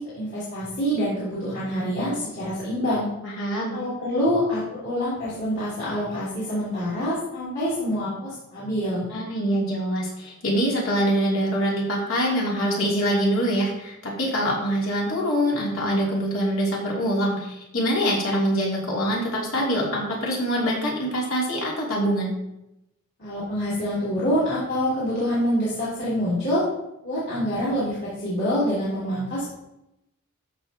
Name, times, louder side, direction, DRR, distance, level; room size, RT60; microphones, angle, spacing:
voice 1, 0.1-3.1 3.7-9.1 23.2-26.6 27.0-29.5, equal, 50° left, -11 dB, 3.3 m, -26 dB
voice 2, 3.2-3.8 9.1-22.3, equal, 75° left, -4 dB, 3.1 m, -24 dB
13.5 x 5.4 x 3.0 m, 0.88 s
head